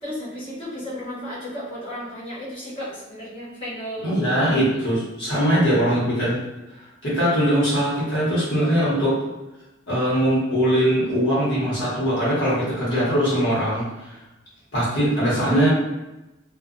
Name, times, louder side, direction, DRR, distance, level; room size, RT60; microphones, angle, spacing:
voice 1, 0.0-4.3, equal, 30° left, -13 dB, 0.9 m, -34 dB
voice 2, 4.0-6.4 7.0-9.1 9.9-14.1 14.7-15.7, equal, 65° left, -9 dB, 1.1 m, -21 dB
2.4 x 2.1 x 2.5 m, 1.0 s
head